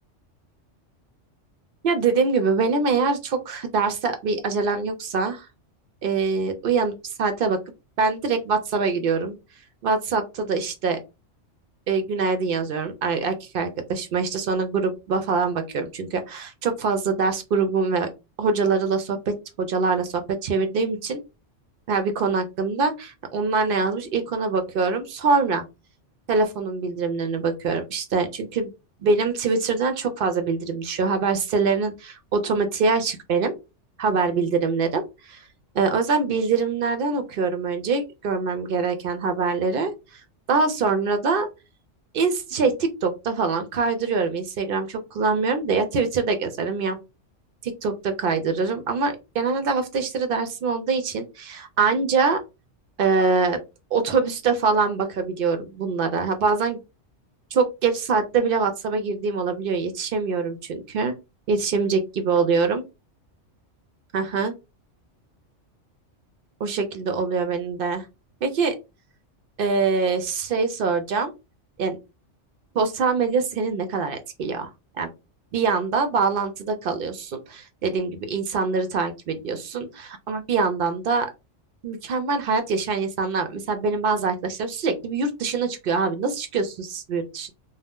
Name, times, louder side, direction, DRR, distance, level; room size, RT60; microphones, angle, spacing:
voice 1, 1.8-5.5 6.0-7.6 8.0-9.4 9.8-11.0 11.9-18.1 18.4-21.2 21.9-25.6 26.3-28.7 29.0-33.5 34.0-35.4 35.7-39.9 40.5-41.5 42.1-47.0 47.6-52.4 53.0-53.6 53.9-56.8 57.5-61.1 61.5-62.8 64.1-64.5 66.6-68.0 68.4-68.7 69.6-71.3 71.8-72.0 72.7-74.7 75.0-75.1 75.5-81.3 81.8-87.5, right 4 dB, 55° right, 8 dB, 0.7 m, -24 dB
2.7 x 2.1 x 3.4 m, 0.26 s
omnidirectional pair, 1.3 m